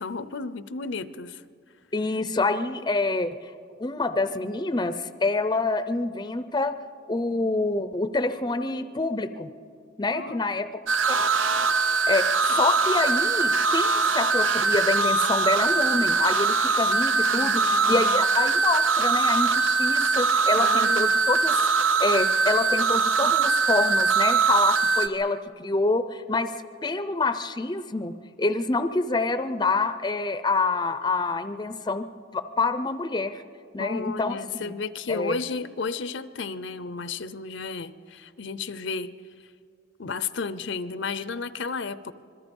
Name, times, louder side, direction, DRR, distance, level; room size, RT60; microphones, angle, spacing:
voice 1, 0.0-1.4 10.1-10.4 12.5-12.6 17.3-18.2 20.5-21.1 33.8-39.1 40.0-42.1, left 4 dB, 75° left, 14 dB, 0.7 m, -33 dB
voice 2, 1.9-3.4 3.8-6.7 7.1-9.5 10.0-10.7 11.1-11.2 12.1-21.5 22.0-26.5 26.8-32.1 32.3-33.4 33.7-34.7 35.1-35.4, left 3 dB, 20° left, 11 dB, 0.6 m, -27 dB
sound 1, 10.9-25.1, right 4 dB, 90° right, 1.0 m, -22 dB
26.5 x 21.5 x 5.4 m, 2.3 s
head